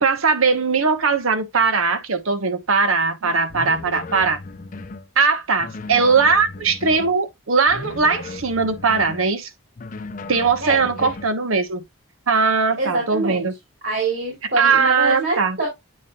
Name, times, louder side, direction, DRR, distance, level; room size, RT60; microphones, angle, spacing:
voice 1, 0.0-4.4 5.2-9.5 10.3-11.8 12.3-13.5 14.6-15.6, right 4 dB, 80° right, 1.0 m, -19 dB
sound 1, 3.5-5.1 5.6-7.2 7.7-9.3 9.8-11.3, left 3 dB, 40° left, 0.5 m, -36 dB
voice 2, 10.6-11.1 12.8-13.5 13.8-15.7, right 2 dB, 55° right, 2.7 m, -25 dB
8.4 x 5.4 x 2.3 m
head